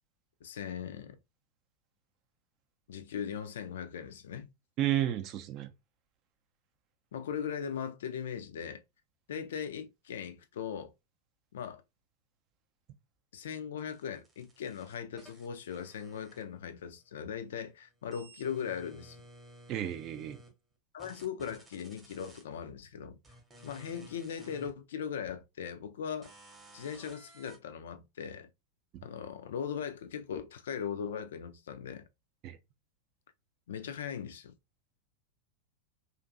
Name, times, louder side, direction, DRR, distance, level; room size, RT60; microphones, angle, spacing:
voice 1, 0.4-1.2 2.9-4.5 7.1-8.8 9.3-10.9 11.5-11.8 13.3-19.2 20.9-23.2 23.6-26.3 26.7-28.5 29.0-32.1 33.7-34.5, left 7 dB, 60° left, 0.3 m, -39 dB
voice 2, 4.8-5.7 19.7-20.4 28.9-29.0 32.4-32.6, right 12 dB, 35° right, 0.4 m, -32 dB
sound 1, 13.8-16.9 17.2-20.5 21.0-22.4 23.2-24.7 25.3-25.4 26.2-27.6, right 1 dB, 15° right, 0.8 m, -55 dB
2.5 x 2.5 x 2.4 m
figure-of-eight pair, 90°, 0 cm